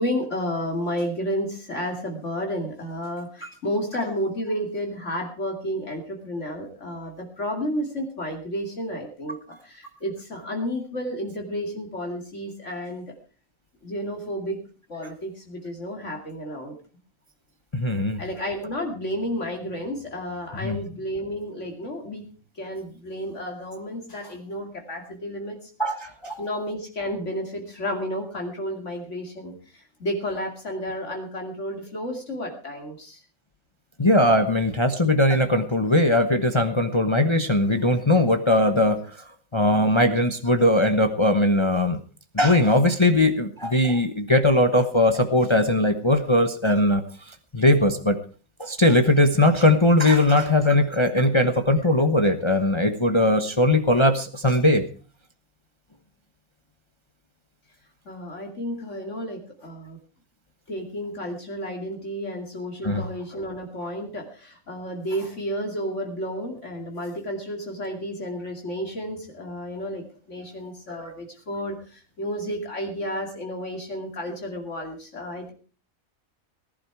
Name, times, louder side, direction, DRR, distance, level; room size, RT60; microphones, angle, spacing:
voice 1, 0.0-13.1 13.8-14.6 14.9-16.8 18.2-22.3 22.5-25.7 26.4-33.2 58.0-60.0 60.7-75.5, equal, 60° left, 2 dB, 2.8 m, -31 dB
voice 2, 17.7-18.2 20.6-20.8 25.8-26.3 34.0-39.0 39.5-42.0 42.3-47.0 47.5-48.2 48.6-54.8 62.8-63.0 70.9-71.0, left 1 dB, 25° left, 7 dB, 1.0 m, -20 dB
19.0 x 11.5 x 4.7 m, 0.39 s
omnidirectional pair, 1.4 m